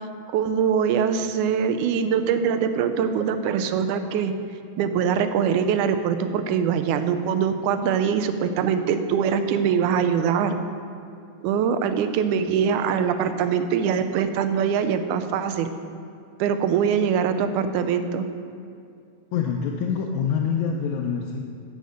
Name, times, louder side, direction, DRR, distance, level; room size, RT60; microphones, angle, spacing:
voice 1, 0.3-4.3 4.8-10.6 11.4-15.7 16.4-18.2, right 7 dB, 85° right, 9 dB, 2.1 m, -23 dB
voice 2, 19.3-21.4, left 7 dB, 80° left, 1 dB, 2.0 m, -25 dB
15.0 x 5.4 x 6.4 m, 2.4 s
omnidirectional pair, 3.5 m